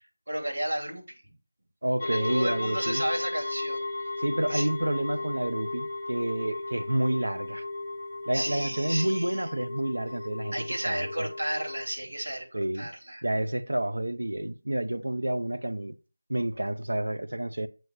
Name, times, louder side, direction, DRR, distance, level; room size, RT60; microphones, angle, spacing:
voice 1, 0.0-1.3 2.0-3.8 4.5-4.7 8.3-9.5 10.5-13.3, right 1 dB, 70° right, 3.4 m, -33 dB
voice 2, 1.8-3.0 4.2-7.6 8.2-11.3 12.5-12.9 13.2-16.0 16.3-17.7, right 1 dB, 85° right, 0.8 m, -29 dB
sound 1, 2.0-11.9, left 2 dB, 20° left, 0.7 m, -35 dB
7.7 x 3.0 x 5.1 m
figure-of-eight pair, 175°, 0 cm